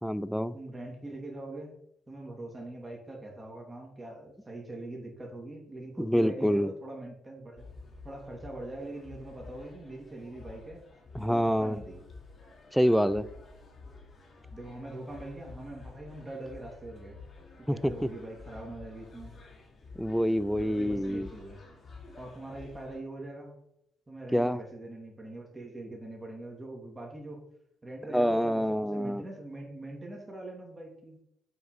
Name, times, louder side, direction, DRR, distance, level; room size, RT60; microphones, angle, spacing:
voice 1, 0.0-0.5 6.0-6.7 11.1-11.8 12.7-13.2 17.7-17.8 20.0-21.3 24.3-24.6 28.1-29.2, equal, ahead, 0.4 m, -26 dB
voice 2, 0.5-1.8 2.1-7.7 8.0-10.8 11.2-12.1 14.5-17.2 17.7-19.3 20.6-21.6 22.2-23.6 24.1-27.5 27.8-31.2, right 2 dB, 25° right, 2.1 m, -43 dB
sound 1, 7.6-23.0, left 3 dB, 45° left, 1.7 m, -50 dB
6.6 x 4.4 x 4.7 m
supercardioid pair, 60°, 0 cm